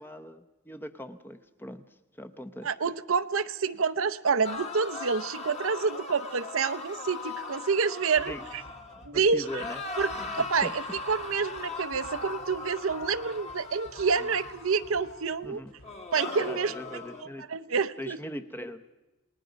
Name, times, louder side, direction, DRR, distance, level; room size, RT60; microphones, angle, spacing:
voice 1, 0.0-1.8 2.2-2.7 8.2-8.4 9.0-9.8 10.1-10.7 15.4-15.7 16.4-17.5 18.0-18.9, equal, 10° left, 9 dB, 0.8 m, -41 dB
voice 2, 2.6-8.6 9.1-9.6 10.0-15.6 16.1-18.2, right 5 dB, 70° right, 12 dB, 0.7 m, -28 dB
sound 1, 4.4-9.1 9.4-15.3 15.8-17.2, left 3 dB, 30° left, 1.6 m, -39 dB
sound 2, 8.2-15.9, equal, 80° left, 4.6 m, -53 dB
28.5 x 19.5 x 5.2 m, 1.1 s
head